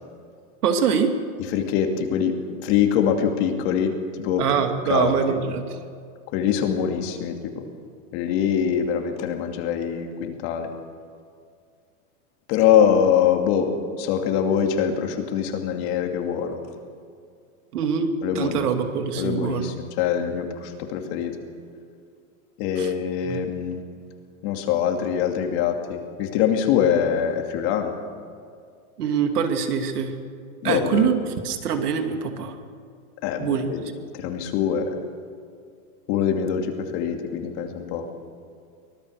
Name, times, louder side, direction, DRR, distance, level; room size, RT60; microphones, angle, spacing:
voice 1, 0.6-1.1 4.4-5.8 17.7-18.1 18.3-19.7 22.8-22.9 23.2-23.5 29.0-30.1 30.6-32.5 33.4-33.7, right 7 dB, 80° right, 5 dB, 2.7 m, -24 dB
voice 2, 1.5-4.5 4.9-5.4 6.3-7.6 8.1-10.7 12.5-13.7 14.0-16.6 18.2-18.7 19.2-21.4 22.6-23.8 24.4-28.0 30.6-31.1 33.2-33.8 34.1-34.9 36.1-38.1, left 8 dB, 45° left, 4 dB, 2.7 m, -23 dB
24.5 x 17.5 x 6.6 m, 2.2 s
supercardioid pair, 155°, 45 cm